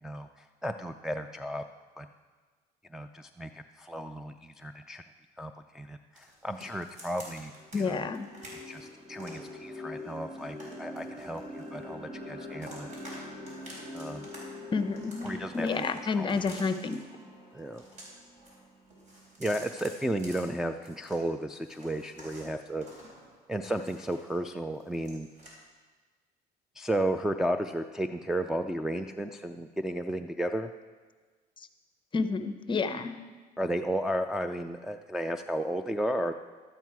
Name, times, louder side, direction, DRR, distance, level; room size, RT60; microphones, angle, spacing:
voice 1, 0.0-1.6 2.0-2.1 2.9-5.0 5.4-7.5 7.8-8.1 8.7-12.9 13.9-14.3 15.2-16.4 17.5-17.8 19.4-22.8 23.5-25.3 26.8-30.7 33.6-36.3, right 1 dB, 5° right, 3 dB, 0.4 m, -33 dB
sound 1, 6.2-7.8 8.1-9.5 10.0-12.0 12.3-13.2 13.5-14.4 14.6-17.0 17.6-18.6 18.8-21.2 21.5-24.4 24.7-25.5, equal, 45° right, 4.2 m, -50 dB
sound 2, 7.0-7.1 7.6-19.6, left 1 dB, 30° right, 1.7 m, -45 dB
voice 2, 7.7-8.3 14.7-17.0 32.1-33.1, left 4 dB, 30° left, 10 dB, 0.7 m, -30 dB
12.0 x 9.1 x 4.7 m, 1.4 s
cardioid pair, 110°, 17 cm